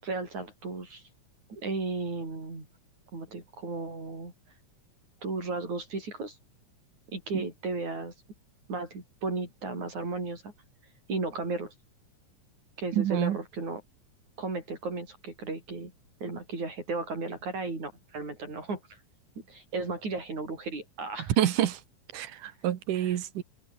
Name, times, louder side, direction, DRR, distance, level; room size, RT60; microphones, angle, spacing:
voice 1, 0.0-1.0 1.5-2.7 3.1-4.3 5.2-6.4 7.1-8.1 8.7-10.5 11.1-11.7 12.8-13.8 14.4-15.9 16.2-18.8 19.5-21.3 22.9-23.2, right 3 dB, 70° right, 9.1 m, -35 dB
voice 2, 12.9-13.4 21.4-21.8 22.1-23.4, right 11 dB, 85° right, 3.1 m, -27 dB
open air
omnidirectional pair, 3.5 m